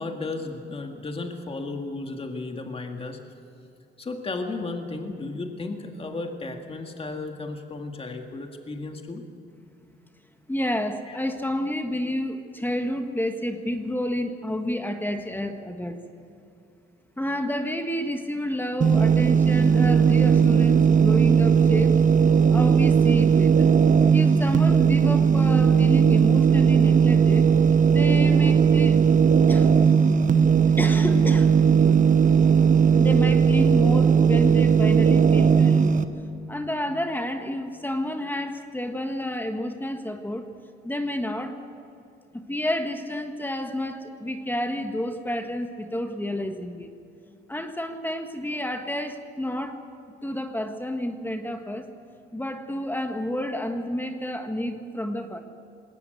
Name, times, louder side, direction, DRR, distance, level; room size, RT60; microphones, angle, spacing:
voice 1, 0.0-3.2 4.0-9.2 11.1-11.2, left 3 dB, 30° left, 4 dB, 2.0 m, -34 dB
voice 2, 10.5-16.0 17.2-21.9 22.5-23.7 24.1-27.5 27.9-29.0 29.5-29.7 30.8-31.5 31.8-32.1 33.0-35.9 36.5-40.4 40.8-41.6 42.5-46.9 47.5-49.8 50.2-51.8 52.3-55.4, left 1 dB, 10° left, 6 dB, 1.5 m, -29 dB
sound 1, 18.8-36.0, right 6 dB, 40° right, 1.1 m, -18 dB
20.5 x 18.0 x 7.9 m, 2.6 s
cardioid pair, 90°, 20 cm